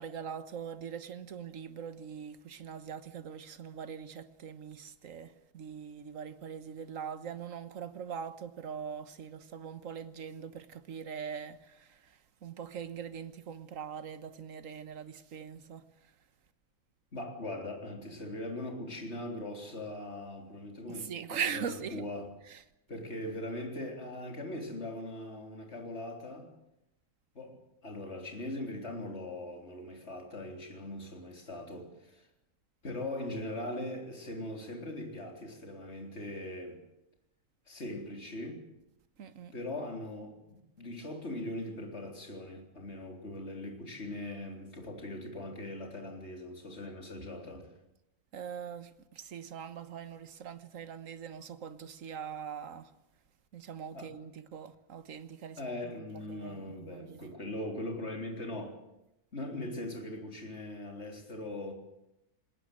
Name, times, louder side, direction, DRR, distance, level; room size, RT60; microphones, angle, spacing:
voice 1, 0.0-16.1 20.9-22.0 22.5-22.6 39.2-39.5 48.3-52.9 53.5-57.3, right 7 dB, 60° right, 1.6 m, -42 dB
voice 2, 17.1-22.3 22.9-26.5 27.4-27.6 27.8-32.3 32.8-36.8 37.7-38.6 39.5-47.7 53.9-54.1 55.6-58.8 59.3-61.7, left 1 dB, 45° left, 4.0 m, -40 dB
20.5 x 18.5 x 9.1 m
omnidirectional pair, 1.6 m